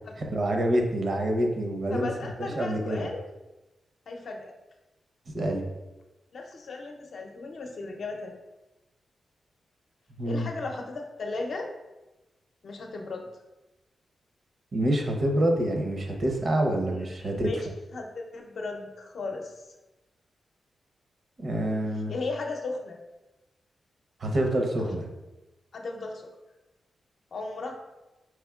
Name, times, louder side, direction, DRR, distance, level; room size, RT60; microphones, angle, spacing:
voice 1, 0.2-2.1 2.4-3.1 5.3-5.6 10.2-10.5 14.7-17.5 21.4-22.1 24.2-25.1, right 1 dB, 50° right, 2 dB, 0.7 m, -27 dB
voice 2, 1.9-3.2 4.1-4.5 6.3-8.3 10.2-11.7 12.6-13.3 16.8-17.6 17.9-19.7 22.1-23.0 24.8-24.9 25.7-26.3 27.3-27.7, left 3 dB, 65° left, 2 dB, 0.6 m, -36 dB
4.7 x 3.5 x 2.3 m, 1.1 s
cardioid pair, 95°, 0 cm